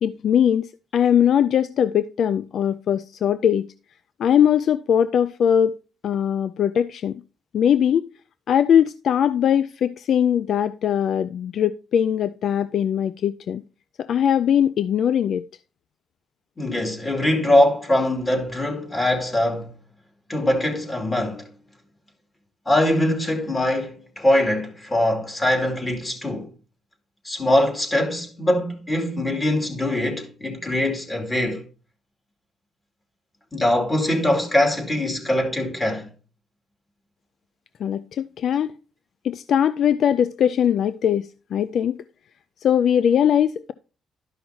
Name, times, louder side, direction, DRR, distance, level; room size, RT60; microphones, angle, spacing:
voice 1, 0.0-3.7 4.2-5.8 6.0-7.2 7.5-8.0 8.5-13.6 14.0-15.5 37.8-38.7 39.2-42.0 42.6-43.7, left 9 dB, 65° left, 0.3 m, -20 dB
voice 2, 16.6-19.8 20.3-21.5 22.7-26.5 27.2-31.6 33.5-36.1, left 1 dB, 20° left, 2.5 m, -22 dB
12.5 x 5.6 x 2.8 m
cardioid pair, 90°, 0 cm